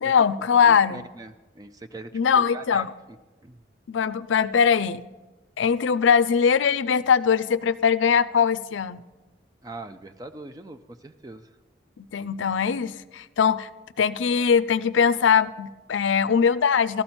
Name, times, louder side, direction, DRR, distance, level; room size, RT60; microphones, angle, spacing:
voice 1, 0.0-1.0 2.1-2.9 3.9-5.0 5.6-9.0 12.0-13.7 14.0-17.0, left 6 dB, 85° left, 17 dB, 0.4 m, -21 dB
voice 2, 0.6-2.9 3.4-3.6 9.6-11.5, right 2 dB, 20° right, 8 dB, 0.4 m, -41 dB
15.0 x 13.0 x 4.4 m, 1.2 s
head